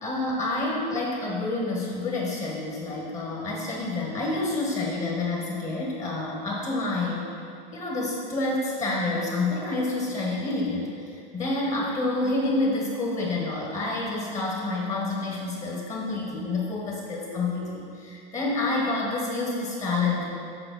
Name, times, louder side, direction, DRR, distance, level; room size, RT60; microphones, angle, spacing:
voice 1, 0.0-7.3 7.7-20.2, left 2 dB, 25° left, -3 dB, 1.6 m, -28 dB
7.9 x 5.5 x 4.1 m, 2.4 s
supercardioid pair, 125°, 29 cm